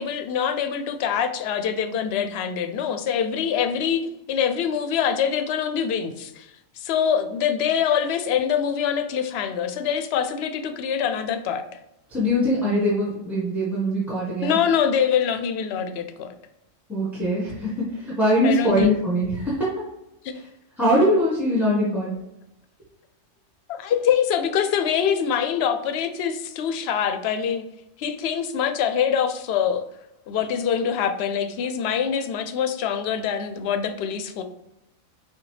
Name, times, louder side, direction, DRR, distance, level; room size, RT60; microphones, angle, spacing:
voice 1, 0.0-6.5 6.8-11.6 14.4-16.3 18.4-19.0 20.2-20.4 23.7-27.7 28.0-29.9 30.3-34.4, left 8 dB, 65° left, 8 dB, 0.7 m, -24 dB
voice 2, 12.1-14.6 16.9-19.8 20.8-22.1, equal, ahead, -7 dB, 1.1 m, -22 dB
6.4 x 2.3 x 3.2 m, 0.88 s
omnidirectional pair, 1.4 m